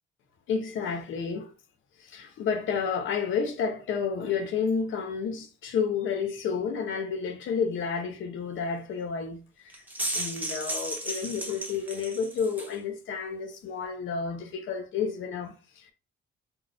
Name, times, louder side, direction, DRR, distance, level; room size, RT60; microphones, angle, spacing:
voice 1, 0.5-1.5 2.0-9.8 10.1-15.9, left 6 dB, 75° left, 0.9 m, -31 dB
sound 1, 9.7-12.8, right 1 dB, 10° right, 0.9 m, -34 dB
3.7 x 2.3 x 3.9 m
cardioid pair, 90°, 20 cm